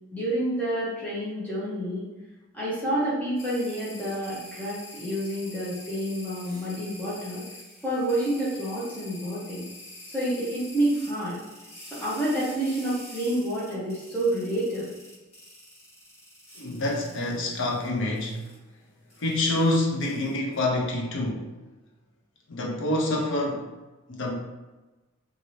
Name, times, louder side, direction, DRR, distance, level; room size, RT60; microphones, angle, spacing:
voice 1, 0.1-2.1 2.5-7.4 7.8-9.6 10.1-11.4 11.9-14.9, right 1 dB, 10° left, -9 dB, 0.8 m, -28 dB
sound 1, 3.3-17.9 18.1-18.6 19.1-20.6, left 1 dB, 30° left, 1.4 m, -46 dB
voice 2, 16.6-18.4 19.2-21.5 22.5-23.7 24.1-24.3, left 2 dB, 60° left, -1 dB, 0.6 m, -27 dB
2.7 x 2.6 x 3.0 m, 1.1 s
head